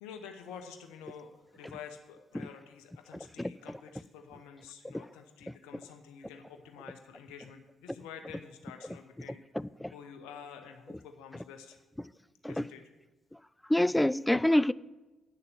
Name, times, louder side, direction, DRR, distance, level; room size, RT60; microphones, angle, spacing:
voice 1, 0.0-9.4 9.9-11.8 12.5-12.8, left 7 dB, 75° left, 0.8 m, -49 dB
voice 2, 9.6-9.9 12.4-12.6 13.7-14.7, left 1 dB, 10° left, 0.3 m, -26 dB
9.4 x 6.8 x 7.1 m
hypercardioid pair, 45°, 0 cm